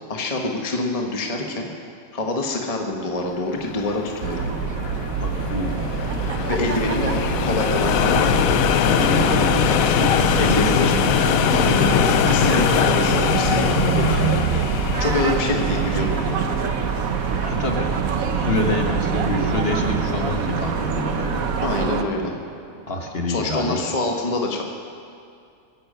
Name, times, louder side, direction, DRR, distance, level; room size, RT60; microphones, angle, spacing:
voice 1, 0.1-1.7 2.1-4.4 6.5-8.7 10.4-11.2 11.5-14.5 15.0-16.4 21.6-22.3 23.3-24.6, left 2 dB, 30° left, 1 dB, 1.2 m, -26 dB
sound 1, 3.5-21.8, left 10 dB, 90° left, 1.1 m, -24 dB
sound 2, 4.2-22.0, right 7 dB, 80° right, 1.3 m, -25 dB
voice 2, 5.2-5.8 8.8-10.9 17.4-21.4 22.9-23.8, left 2 dB, 45° left, 2 dB, 1.6 m, -27 dB
Thunder, 18.7-24.0, right 4 dB, 40° right, 1.0 m, -43 dB
23.0 x 10.0 x 5.4 m, 2.4 s
omnidirectional pair, 1.4 m